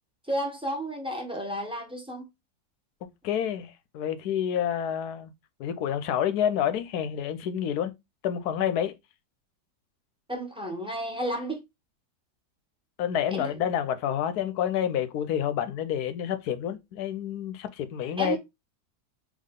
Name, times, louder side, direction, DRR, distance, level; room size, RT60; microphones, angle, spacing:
voice 1, 0.3-2.2 10.3-11.6 13.3-13.6 18.2-18.4, right 1 dB, 5° right, 1.1 m, -32 dB
voice 2, 3.2-5.3 5.6-7.9 8.2-9.0 13.0-18.4, left 9 dB, 85° left, 1.1 m, -28 dB
3.7 x 3.3 x 3.6 m
omnidirectional pair, 1.7 m